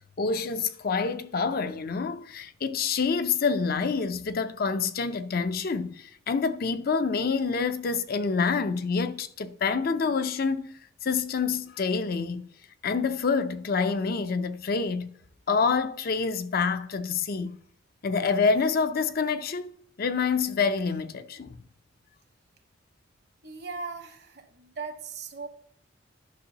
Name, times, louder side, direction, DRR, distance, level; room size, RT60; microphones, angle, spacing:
voice 1, 0.2-10.6 11.0-12.5 12.8-15.1 15.5-17.6 18.0-19.7 20.0-21.6, left 5 dB, 50° left, 0.5 m, -27 dB
voice 2, 23.4-25.5, right 4 dB, 60° right, 1.3 m, -38 dB
10.5 x 6.2 x 2.9 m
head